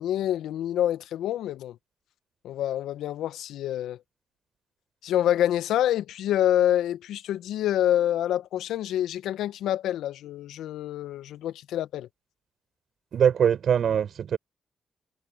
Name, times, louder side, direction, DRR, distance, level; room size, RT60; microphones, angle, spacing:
voice 1, 0.0-1.8 2.4-4.0 5.0-12.1, left 11 dB, 80° left, 1.5 m, -27 dB
voice 2, 13.1-14.4, right 8 dB, 65° right, 6.4 m, -22 dB
hypercardioid pair, 40°, 0 cm